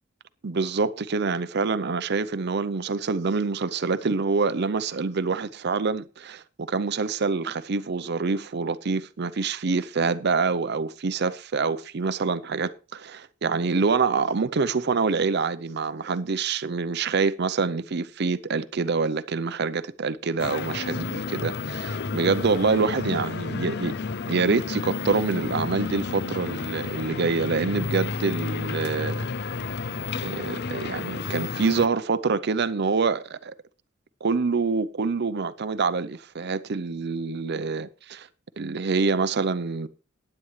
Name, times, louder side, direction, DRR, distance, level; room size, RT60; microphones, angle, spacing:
voice 1, 0.4-23.9 24.3-29.2 30.2-33.5 34.2-38.3 38.6-39.9, right 4 dB, 60° right, 0.6 m, -26 dB
sound 1, 20.4-31.9, left 4 dB, 55° left, 0.6 m, -31 dB
15.5 x 9.9 x 3.2 m
head